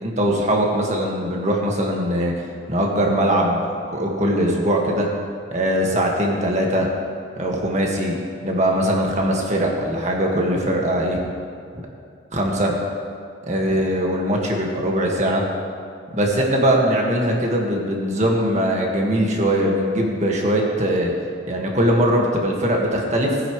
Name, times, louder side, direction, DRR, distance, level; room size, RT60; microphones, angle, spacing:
voice 1, 0.0-2.3 2.7-3.6 3.9-5.1 5.5-6.9 7.4-11.2 12.3-12.8 13.4-15.5 16.1-21.1 21.5-23.4, equal, 40° right, -1 dB, 1.8 m, -21 dB
19.5 x 9.9 x 3.2 m, 2.2 s
head